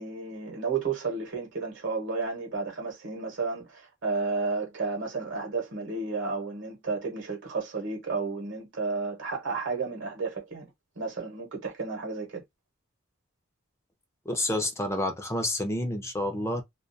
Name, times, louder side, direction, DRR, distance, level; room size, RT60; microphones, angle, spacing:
voice 1, 0.0-10.7 11.0-12.4, right 4 dB, 65° right, 0.9 m, -32 dB
voice 2, 14.3-16.6, left 1 dB, 15° left, 0.5 m, -29 dB
2.3 x 2.3 x 2.6 m
head